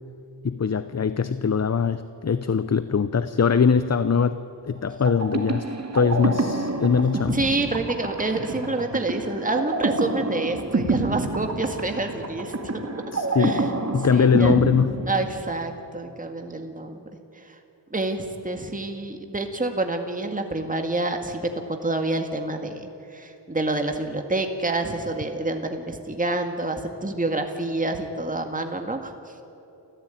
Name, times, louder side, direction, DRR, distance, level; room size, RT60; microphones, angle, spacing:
voice 1, 0.4-4.4 4.6-5.7 5.9-7.4 13.1-14.9, left 6 dB, 35° left, 13 dB, 0.8 m, -22 dB
sound 1, 5.0-15.7, right 3 dB, 35° right, 2.4 m, -28 dB
voice 2, 7.3-12.5 13.4-13.7 14.1-14.6 15.1-17.0 17.9-29.1, right 2 dB, 20° right, 5 dB, 2.0 m, -28 dB
28.5 x 14.5 x 9.2 m, 2.9 s
wide cardioid pair, 70°, 43 cm